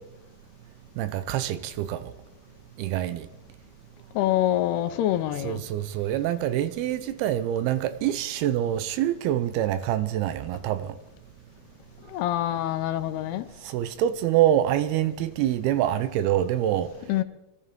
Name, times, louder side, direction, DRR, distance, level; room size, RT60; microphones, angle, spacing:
voice 1, 1.0-2.1 2.8-3.3 5.4-10.9 13.6-16.9, right 12 dB, 80° right, 2.4 m, -26 dB
voice 2, 4.2-5.6 12.1-13.5 17.1-17.2, left 12 dB, 80° left, 2.7 m, -25 dB
23.5 x 13.0 x 3.6 m
omnidirectional pair, 4.7 m